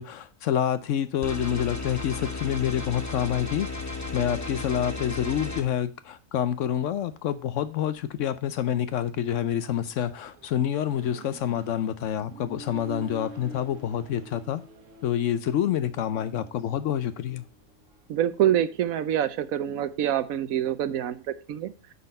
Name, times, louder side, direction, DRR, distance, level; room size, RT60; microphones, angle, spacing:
voice 1, 0.0-3.7 4.1-14.6 15.0-17.4, left 10 dB, 70° left, 0.9 m, -27 dB
sound 1, 1.2-5.6, left 3 dB, 15° left, 0.9 m, -34 dB
Accelerating revving vroom, 7.8-18.1, right 3 dB, 65° right, 1.7 m, -48 dB
voice 2, 18.1-21.2 21.5-21.7, right 11 dB, 90° right, 1.2 m, -25 dB
9.5 x 4.2 x 5.3 m
omnidirectional pair, 1.4 m